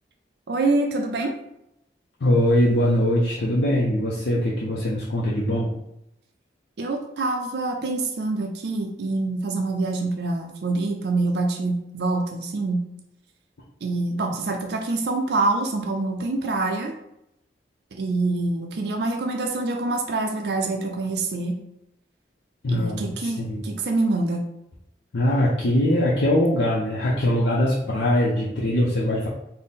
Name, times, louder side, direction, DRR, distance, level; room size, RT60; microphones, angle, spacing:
voice 1, 0.5-1.3 6.8-12.8 13.8-16.9 17.9-21.6 22.7-24.5, right 2 dB, 65° right, 3 dB, 0.4 m, -25 dB
voice 2, 2.2-5.7 22.6-23.6 25.1-29.3, left 1 dB, 75° left, -5 dB, 0.6 m, -22 dB
3.6 x 2.1 x 4.0 m, 0.81 s
head